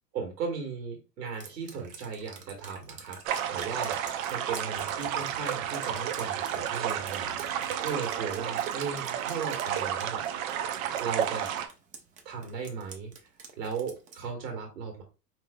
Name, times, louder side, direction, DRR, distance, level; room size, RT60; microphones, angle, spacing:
voice 1, 0.1-3.2 3.5-4.0 4.3-10.2 11.0-11.6 12.2-13.1 13.6-15.0, right 5 dB, 80° right, 3 dB, 1.6 m, -36 dB
Drip, 1.4-14.3, right 5 dB, 20° right, 0.4 m, -47 dB
sound 1, 3.2-11.7, right 10 dB, 55° right, 0.7 m, -32 dB
5.2 x 2.9 x 2.2 m, 0.30 s
hypercardioid pair, 110°, 49 cm